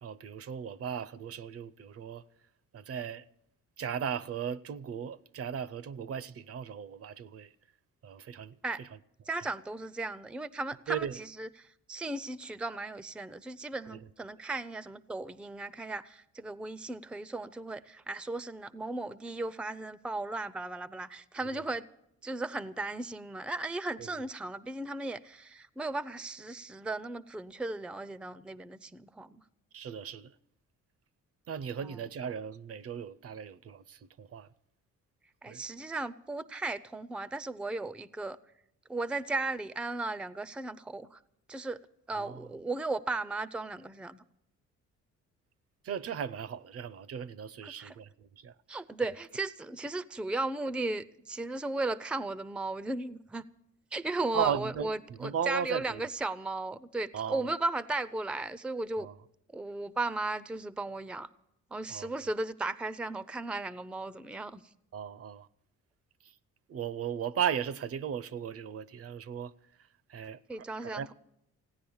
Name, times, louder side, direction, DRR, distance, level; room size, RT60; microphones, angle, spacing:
voice 1, 0.0-2.2 2.7-3.2 3.8-7.5 8.0-8.6 10.9-11.2 13.9-14.0 24.0-24.1 29.7-30.3 31.5-34.5 35.5-35.6 42.2-42.4 45.8-48.5 54.3-56.0 57.1-57.4 59.0-59.1 61.9-62.1 64.9-65.5 66.7-69.5 70.1-70.4 70.8-71.1, right 8 dB, 50° right, 0.6 m, -36 dB
voice 2, 9.3-21.9 22.2-29.4 31.8-32.0 35.4-38.4 38.9-41.2 41.5-41.8 42.1-44.2 47.6-48.0 48.7-53.4 53.9-59.1 59.5-61.3 61.7-64.6 70.5-71.1, right 2 dB, 5° right, 0.5 m, -36 dB
16.5 x 9.9 x 7.1 m
cardioid pair, 90°, 30 cm